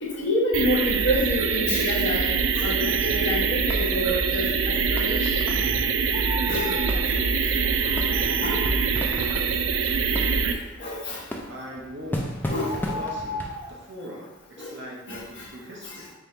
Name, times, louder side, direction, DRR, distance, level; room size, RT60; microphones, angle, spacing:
voice 1, 0.0-5.6 6.1-6.7 7.0-7.2 7.8-8.6 10.8-11.2 12.5-12.8 14.6-14.7 15.1-15.4 15.8-16.0, left 1 dB, 55° left, -5 dB, 1.1 m, -28 dB
sound 1, 0.5-10.5, right 5 dB, 70° right, 0.3 m, -24 dB
sound 2, 3.0-13.6, equal, 10° left, 0.3 m, -37 dB
sound 3, 6.1-7.0 11.6-11.8 12.5-13.7, left 3 dB, 80° left, 0.5 m, -34 dB
voice 2, 11.5-12.3 12.9-13.5 13.8-14.3 14.6-16.1, equal, 55° right, -2 dB, 0.8 m, -40 dB
3.5 x 2.7 x 4.3 m, 1.1 s
head